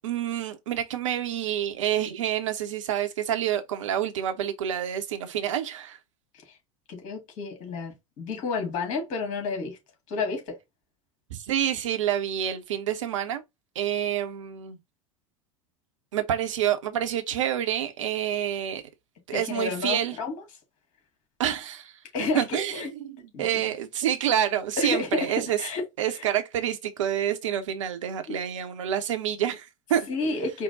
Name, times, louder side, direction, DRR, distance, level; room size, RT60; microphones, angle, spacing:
voice 1, 0.0-6.0 11.3-13.4 13.7-14.8 16.1-18.8 19.3-20.2 21.4-21.9 22.2-25.6 26.0-30.1, right 10 dB, 65° right, 0.9 m, -28 dB
voice 2, 6.9-9.8 10.1-10.6 19.3-20.4 22.1-22.9 23.3-23.6 24.8-26.3 28.3-28.4 30.1-30.6, left 3 dB, 45° left, 2.2 m, -31 dB
4.7 x 2.2 x 3.9 m
figure-of-eight pair, 80°, 18 cm